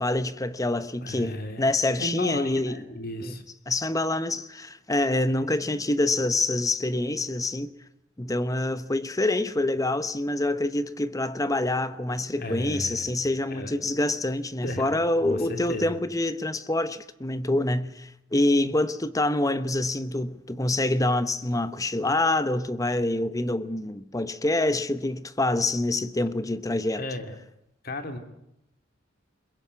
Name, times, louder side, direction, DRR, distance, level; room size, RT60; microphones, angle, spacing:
voice 1, 0.0-2.8 3.2-3.4 3.7-7.7 8.2-27.0, left 2 dB, 20° left, 0.9 m, -26 dB
voice 2, 1.0-1.7 2.0-3.4 12.4-13.1 13.5-13.7 14.6-16.0 27.0-27.3 27.8-28.2, left 1 dB, 50° left, 2.6 m, -35 dB
22.5 x 21.5 x 9.5 m
head